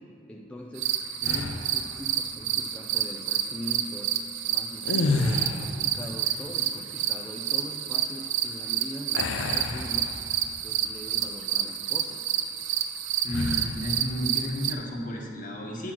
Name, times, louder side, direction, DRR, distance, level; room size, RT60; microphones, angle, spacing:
voice 1, 0.3-4.1 4.5-10.1 10.6-12.3, equal, 5° left, -1 dB, 0.4 m, -41 dB
sound 1, 0.8-14.7, right 10 dB, 75° right, 0.5 m, -29 dB
sound 2, 1.2-1.9 4.8-5.9 9.1-10.6 11.1-11.3 13.3-13.8, left 3 dB, 85° left, 0.6 m, -29 dB
voice 2, 13.2-15.9, equal, 45° left, -1 dB, 1.3 m, -32 dB
8.9 x 6.1 x 6.0 m, 2.9 s
head